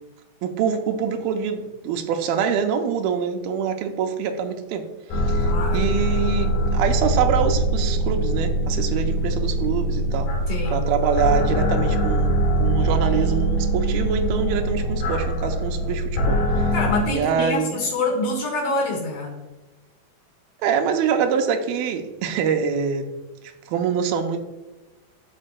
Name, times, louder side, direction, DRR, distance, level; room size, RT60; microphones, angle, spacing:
voice 1, 0.4-4.9 5.1-10.3 10.7-16.7 17.0-17.8 20.6-23.1 23.7-24.4, right 7 dB, 80° right, 5 dB, 2.5 m, -25 dB
sound 1, 5.1-17.0, right 1 dB, 70° left, 2.7 m, -22 dB
voice 2, 5.5-5.9 10.5-10.8 16.7-19.4, left 2 dB, 55° left, -2 dB, 3.7 m, -26 dB
13.0 x 5.4 x 2.2 m, 1.1 s
omnidirectional pair, 4.5 m